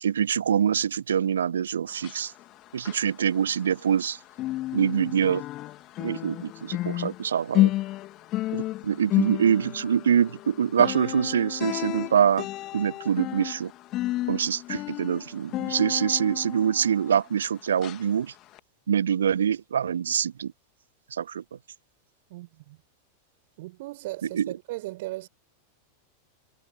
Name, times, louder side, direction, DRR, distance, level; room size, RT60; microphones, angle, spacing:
voice 1, 0.0-2.3 2.7-4.2 4.7-5.4 6.0-7.7 8.5-12.5 12.7-13.7 14.3-18.3 18.9-20.5 21.1-21.4 24.3-24.5, right 8 dB, 65° right, 0.5 m, -25 dB
sound 1, 1.9-4.1 4.3-17.4 17.8-18.0 18.5-18.6, left 16 dB, 35° left, 2.4 m, -31 dB
voice 2, 22.3-22.8 23.6-25.3, right 19 dB, 50° right, 5.2 m, -37 dB
figure-of-eight pair, 90°, 0 cm